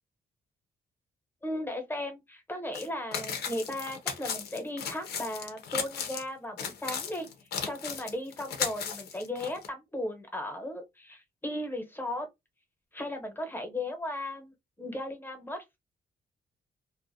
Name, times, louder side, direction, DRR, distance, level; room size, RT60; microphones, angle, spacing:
voice 1, 1.4-7.3 7.6-12.3 12.9-15.8, left 1 dB, 10° left, 0.8 m, -36 dB
sound 1, 2.7-2.9 3.1-6.2 6.6-9.7, left 7 dB, 85° left, 0.6 m, -36 dB
2.4 x 2.1 x 2.5 m
cardioid pair, 110°, 16 cm